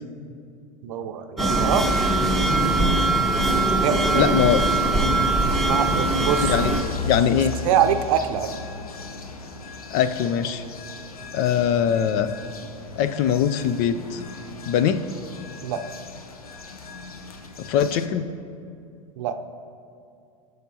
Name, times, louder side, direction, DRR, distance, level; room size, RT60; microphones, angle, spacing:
voice 1, 0.8-1.9 3.8-4.3 5.7-6.5 7.6-8.5 15.6-15.8 19.2-19.4, right 9 dB, 65° right, 8 dB, 0.6 m, -24 dB
sound 1, 1.4-6.8, right 2 dB, ahead, 1.0 m, -21 dB
sound 2, 2.4-18.1, left 4 dB, 90° left, 0.7 m, -37 dB
voice 2, 4.1-4.7 6.4-7.5 9.9-10.6 11.3-12.3 13.0-14.2 14.7-15.0 17.6-18.3, left 8 dB, 50° left, 12 dB, 0.5 m, -22 dB
15.5 x 6.5 x 2.8 m, 2.4 s
hypercardioid pair, 90°, 18 cm